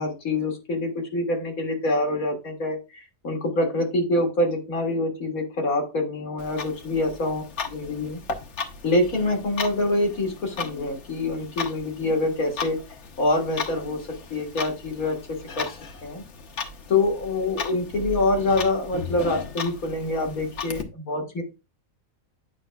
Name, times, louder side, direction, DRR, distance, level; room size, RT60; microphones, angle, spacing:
voice 1, 0.0-8.2 8.8-12.8 13.2-15.7 16.0-16.2 16.9-21.4, left 2 dB, 80° left, 2 dB, 2.1 m, -25 dB
Clock, 6.4-20.8, left 5 dB, 60° left, 1.1 m, -36 dB
9.0 x 5.5 x 2.3 m, 0.27 s
omnidirectional pair, 1.5 m